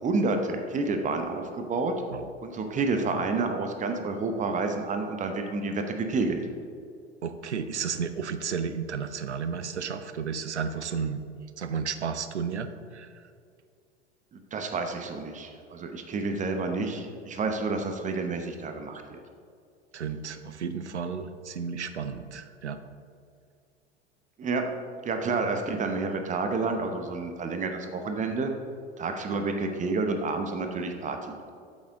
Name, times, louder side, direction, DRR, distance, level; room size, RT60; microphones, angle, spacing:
voice 1, 0.0-1.9 2.4-6.4 14.3-19.2 24.4-24.7 25.0-28.6 29.0-31.3, right 3 dB, 20° right, 5 dB, 0.8 m, -29 dB
voice 2, 7.2-11.2 11.6-13.1 19.9-22.8, right 6 dB, 80° right, 11 dB, 0.6 m, -33 dB
8.5 x 7.4 x 3.6 m, 2.3 s
figure-of-eight pair, 85°, 34 cm